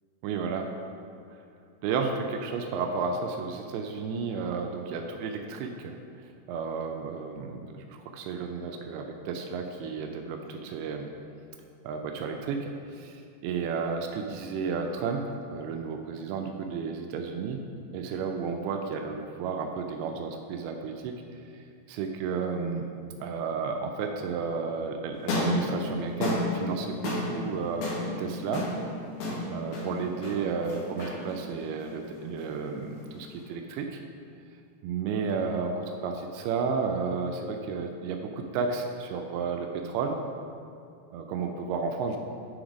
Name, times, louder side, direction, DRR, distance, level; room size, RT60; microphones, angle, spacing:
voice 1, 0.2-0.7 1.3-1.4 1.8-6.0 6.5-11.1 11.8-17.6 17.9-21.1 21.9-22.9 23.2-27.9 28.2-28.7 29.5-34.0 34.8-40.2 41.1-42.2, right 5 dB, 90° right, 3 dB, 2.2 m, -32 dB
sound 1, 25.1-33.4, left 2 dB, 70° left, 3.0 m, -33 dB
9.5 x 3.5 x 5.0 m, 2.4 s
omnidirectional pair, 5.0 m